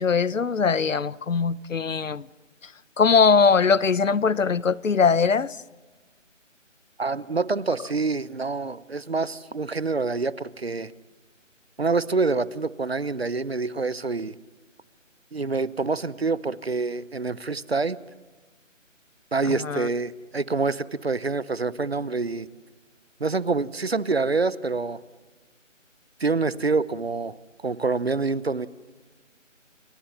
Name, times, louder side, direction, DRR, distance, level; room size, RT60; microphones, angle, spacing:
voice 1, 0.0-2.3 2.6-2.7 3.0-5.6 19.4-19.9, left 5 dB, 75° left, 0.9 m, -21 dB
voice 2, 7.0-10.9 11.8-14.4 15.3-18.0 19.3-22.5 23.2-25.0 26.2-27.4 27.6-28.7, right 4 dB, 50° right, 0.9 m, -26 dB
29.5 x 22.0 x 7.2 m
figure-of-eight pair, 180°, 38 cm